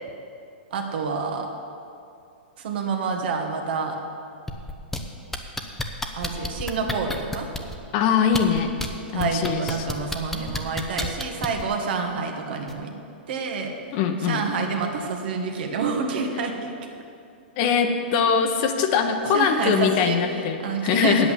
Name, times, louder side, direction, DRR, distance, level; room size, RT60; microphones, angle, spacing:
voice 1, 0.7-1.5 2.6-4.0 6.1-7.5 9.1-12.9 13.3-16.7 19.3-21.3, right 5 dB, 65° right, 3 dB, 1.6 m, -28 dB
sound 1, 4.5-5.0 5.3-7.8 8.3-8.9 9.2-11.6 12.7-12.8, left 2 dB, 5° left, 0.8 m, -30 dB
voice 2, 7.9-8.7 9.1-9.6 13.9-14.4 17.6-21.3, left 6 dB, 45° left, 6 dB, 1.0 m, -22 dB
8.6 x 8.2 x 8.3 m, 2.5 s
hypercardioid pair, 135°, 6 cm